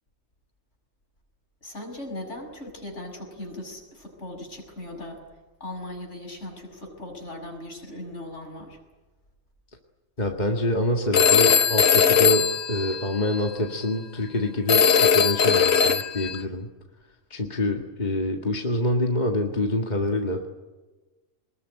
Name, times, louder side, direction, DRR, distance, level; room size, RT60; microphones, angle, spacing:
voice 1, 1.6-5.2 5.6-8.8, left 1 dB, 65° left, 2 dB, 6.7 m, -38 dB
voice 2, 10.2-16.7 17.3-20.5, left 1 dB, 35° left, 2 dB, 2.0 m, -26 dB
Telephone, 11.1-13.5 14.7-16.4, left 7 dB, 90° left, 1.5 m, -20 dB
26.0 x 21.0 x 9.9 m, 1.2 s
omnidirectional pair, 1.3 m